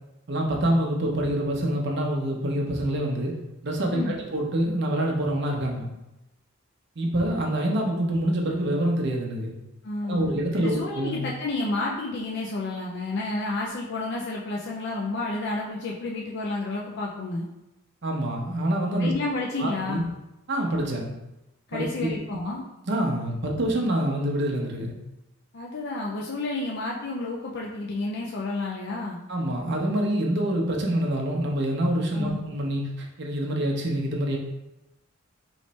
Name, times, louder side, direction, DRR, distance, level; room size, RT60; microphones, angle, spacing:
voice 1, 0.3-3.3 3.6-5.9 7.0-9.5 10.0-11.2 18.0-19.1 19.6-20.0 20.5-21.1 21.7-22.2 22.9-24.9 29.3-34.4, right 1 dB, 60° right, 0 dB, 0.8 m, -26 dB
voice 2, 9.8-17.4 19.0-20.1 21.7-22.6 25.5-29.2 32.1-32.4, left 2 dB, 60° left, -3 dB, 0.5 m, -30 dB
3.2 x 3.1 x 4.1 m, 0.94 s
head